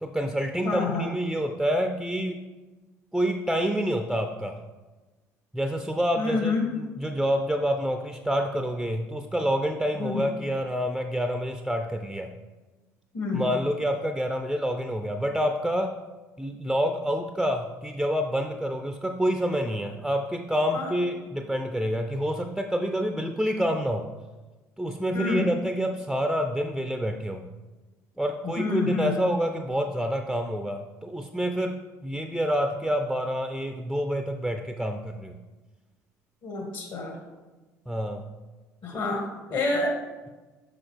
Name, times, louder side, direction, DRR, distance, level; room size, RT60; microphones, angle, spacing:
voice 1, 0.0-2.4 3.1-4.6 5.5-12.3 13.3-16.0 16.4-24.1 24.8-27.5 28.2-35.4 37.9-38.3 38.9-39.0, equal, ahead, 6 dB, 0.4 m, -28 dB
voice 2, 0.6-1.1 6.2-6.7 10.0-10.2 13.1-13.4 20.7-20.9 25.1-25.5 28.6-29.2 36.4-37.2 38.8-39.2 39.5-40.0, left 3 dB, 55° left, 0 dB, 1.8 m, -27 dB
6.2 x 5.6 x 3.4 m, 1.2 s
hypercardioid pair, 60°, 9 cm